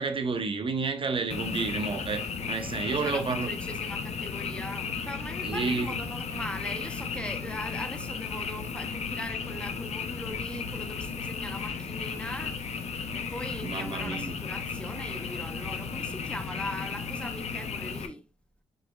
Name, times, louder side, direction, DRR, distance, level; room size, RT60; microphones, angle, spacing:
voice 1, 0.0-3.5 5.4-6.0 13.6-14.3, right 4 dB, 50° right, 0.7 m, -30 dB
Frog, 1.3-18.1, left 5 dB, 70° left, 0.6 m, -34 dB
voice 2, 2.7-18.2, left 1 dB, 10° left, 0.7 m, -40 dB
5.0 x 4.1 x 2.3 m
supercardioid pair, 50°, 12 cm